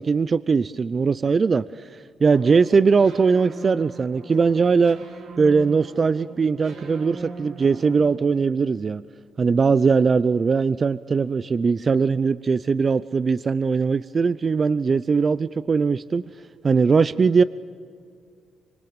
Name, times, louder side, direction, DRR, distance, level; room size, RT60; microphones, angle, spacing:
voice 1, 0.0-1.9 2.2-5.0 5.4-9.0 9.4-16.2 16.6-17.4, right 5 dB, 45° right, 16 dB, 0.6 m, -20 dB
sound 1, 2.2-8.3, right 3 dB, 85° right, 5.0 m, -40 dB
26.0 x 24.5 x 8.9 m, 2.2 s
supercardioid pair, 65°, 0 cm